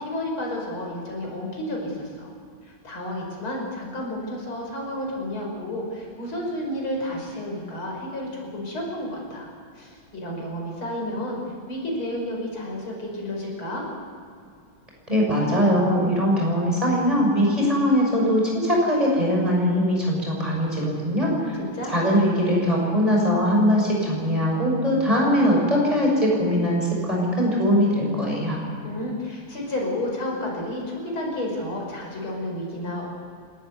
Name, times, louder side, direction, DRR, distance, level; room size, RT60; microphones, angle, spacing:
voice 1, 0.0-2.3 2.7-9.5 9.7-11.4 11.7-13.9 21.4-21.9 28.8-33.1, left 1 dB, 85° left, -1 dB, 6.4 m, -31 dB
voice 2, 15.1-21.3 21.9-28.6, equal, 15° right, -2 dB, 6.6 m, -21 dB
28.5 x 14.0 x 8.1 m, 2.3 s
omnidirectional pair, 2.2 m